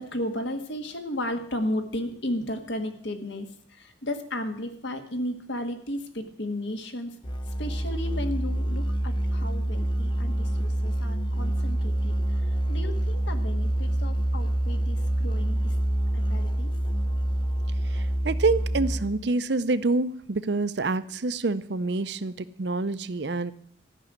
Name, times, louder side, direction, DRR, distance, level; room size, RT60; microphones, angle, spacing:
voice 1, 0.0-7.1 7.5-15.7 16.1-16.7, left 1 dB, 70° left, 7 dB, 1.6 m, -34 dB
Musical instrument, 7.2-19.3, right 1 dB, 25° left, 0.8 m, -26 dB
voice 2, 17.8-23.5, right 3 dB, 60° right, 15 dB, 0.6 m, -27 dB
13.5 x 6.3 x 9.9 m, 0.64 s
head